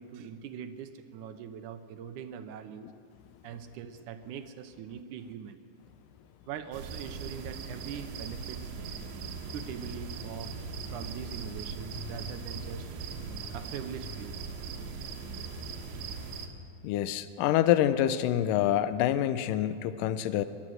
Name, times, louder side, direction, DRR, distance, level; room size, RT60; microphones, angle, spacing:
voice 1, 0.0-2.9 3.4-5.6 6.5-8.7 9.5-12.9 13.5-14.4, right 8 dB, 70° right, 9 dB, 2.0 m, -42 dB
sound 1, 6.7-16.5, right 4 dB, 85° right, 3.5 m, -39 dB
voice 2, 16.8-20.4, left 12 dB, 75° left, 12 dB, 2.1 m, -26 dB
28.0 x 12.0 x 7.8 m, 2.4 s
omnidirectional pair, 4.3 m